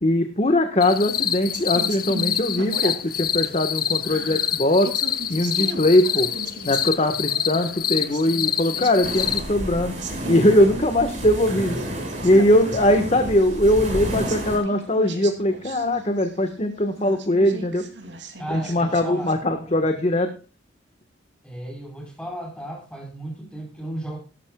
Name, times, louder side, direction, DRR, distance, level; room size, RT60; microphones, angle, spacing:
voice 1, 0.0-4.9 5.3-6.3 6.6-9.9 10.3-11.8 12.2-17.8 18.5-20.3, left 1 dB, 35° left, 6 dB, 1.4 m, -20 dB
sound 1, 0.8-9.4, left 9 dB, 50° left, 1.0 m, -26 dB
sound 2, 1.5-3.3 3.7-7.2 7.5-9.7 10.0-10.6 10.9-11.0 11.5-16.5 17.0-19.4, right 2 dB, 70° right, 2.9 m, -38 dB
sound 3, 9.0-14.6, equal, 40° right, 5.3 m, -31 dB
voice 2, 18.4-19.3 21.4-24.2, right 1 dB, 5° left, 2 dB, 4.6 m, -34 dB
18.0 x 12.5 x 2.3 m, 0.33 s
head